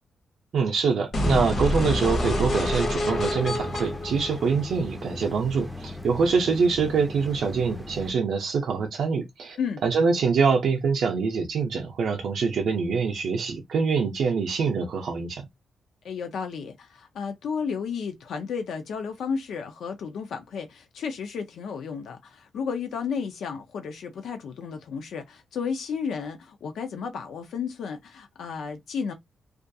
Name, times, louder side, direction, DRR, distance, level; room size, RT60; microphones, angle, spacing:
voice 1, 0.5-15.4, right 5 dB, 70° right, 0.4 m, -25 dB
sound 1, 1.1-5.1, left 1 dB, 45° left, 0.7 m, -27 dB
sound 2, 3.1-8.1, left 2 dB, ahead, 0.4 m, -38 dB
voice 2, 16.0-29.1, left 6 dB, 75° left, 0.4 m, -33 dB
2.4 x 2.2 x 2.6 m
wide cardioid pair, 155°, 0 cm